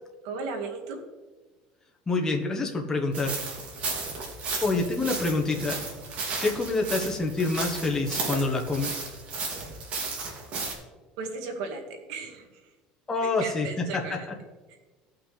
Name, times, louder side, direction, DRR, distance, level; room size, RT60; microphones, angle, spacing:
voice 1, 0.2-1.0 6.4-6.7 11.2-11.8 12.1-12.6 13.2-14.3, right 4 dB, 85° right, 2 dB, 2.0 m, -36 dB
voice 2, 2.1-3.3 4.6-5.8 6.4-9.0 13.1-14.0, left 3 dB, 20° left, 1 dB, 1.3 m, -27 dB
sound 1, 3.1-10.7, right 4 dB, 45° right, 2.6 m, -34 dB
17.0 x 5.9 x 3.4 m, 1.3 s
cardioid pair, 130°, 3 cm